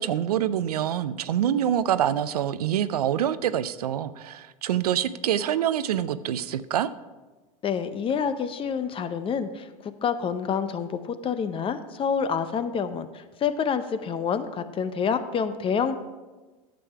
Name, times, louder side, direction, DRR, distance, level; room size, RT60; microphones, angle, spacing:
voice 1, 0.0-6.9, right 10 dB, 85° right, 14 dB, 0.5 m, -26 dB
voice 2, 7.6-16.0, left 6 dB, 30° left, 12 dB, 0.7 m, -28 dB
10.0 x 7.6 x 4.6 m, 1.2 s
hypercardioid pair, 100°, 19 cm